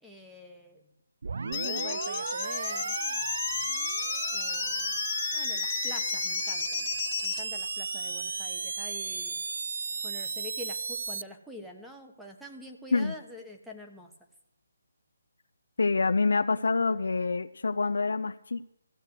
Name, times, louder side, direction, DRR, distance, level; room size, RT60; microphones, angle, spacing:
voice 1, 0.0-0.9 1.4-3.0 4.3-5.0 5.3-6.9 7.2-9.4 10.0-14.1, left 1 dB, ahead, 1 dB, 1.1 m, -46 dB
sound 1, 1.2-11.2, right 4 dB, 60° right, 0.4 m, -34 dB
sound 2, 1.5-7.4, left 13 dB, 20° left, 0.6 m, -34 dB
voice 2, 15.8-18.6, left 4 dB, 70° left, 9 dB, 0.5 m, -26 dB
14.5 x 6.5 x 8.1 m, 0.77 s
figure-of-eight pair, 155°, 0 cm